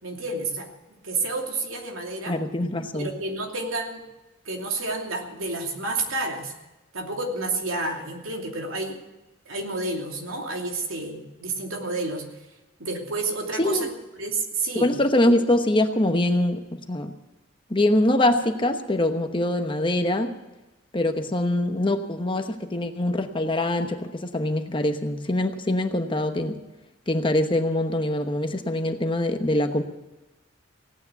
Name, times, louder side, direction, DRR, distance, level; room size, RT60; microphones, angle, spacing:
voice 1, 0.0-2.4 2.9-4.0 4.4-6.5 6.9-9.0 9.5-12.2 12.8-13.9 14.2-14.9, right 3 dB, 85° right, 1 dB, 2.8 m, -30 dB
voice 2, 2.3-3.1 13.6-13.9 14.8-17.1 17.7-20.4 20.9-26.6 27.1-29.8, left 1 dB, 25° left, 6 dB, 1.0 m, -24 dB
17.0 x 9.7 x 8.3 m, 1.0 s
head